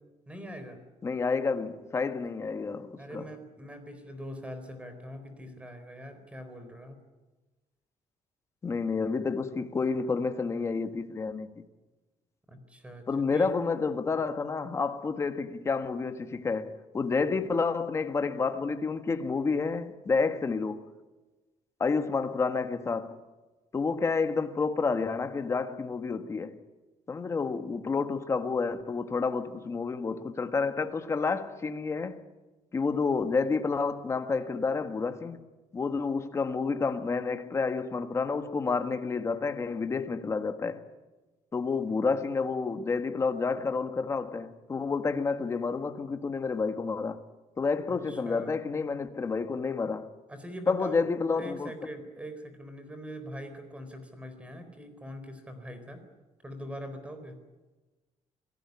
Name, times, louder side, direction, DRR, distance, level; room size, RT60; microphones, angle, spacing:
voice 1, 0.3-0.8 3.0-7.0 12.5-13.1 13.3-13.5 47.9-48.6 50.3-51.1 51.3-56.0 56.4-57.4, equal, 10° right, 4.2 m, -42 dB
voice 2, 1.0-3.3 8.6-11.5 13.1-20.9 21.8-23.2 23.7-26.6 27.1-32.2 32.7-35.4 35.7-40.8 41.5-47.2 47.6-50.1 50.7-51.7, left 4 dB, 25° left, 1.6 m, -29 dB
27.5 x 18.0 x 9.7 m
cardioid pair, 160°, 12 cm